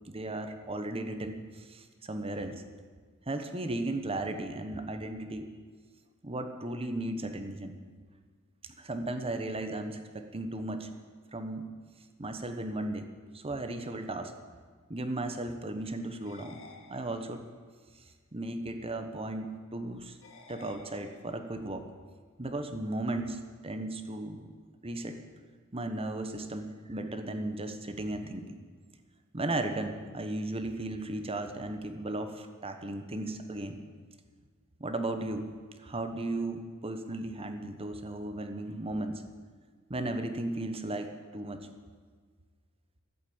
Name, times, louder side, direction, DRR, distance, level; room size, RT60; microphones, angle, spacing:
voice 1, 0.1-2.6 3.3-5.5 6.2-7.7 8.6-10.9 11.3-11.7 12.2-13.1 13.3-14.3 14.9-16.6 16.9-17.5 18.3-20.2 20.5-21.9 22.4-24.5 24.8-25.2 25.7-28.6 29.3-33.8 34.8-35.5 35.8-39.2 39.9-41.7, right 2 dB, 25° right, 7 dB, 1.2 m, -35 dB
sound 1, 16.2-17.6 20.2-21.6, left 4 dB, 65° left, 1.7 m, -53 dB
15.0 x 8.4 x 8.7 m, 1.5 s
head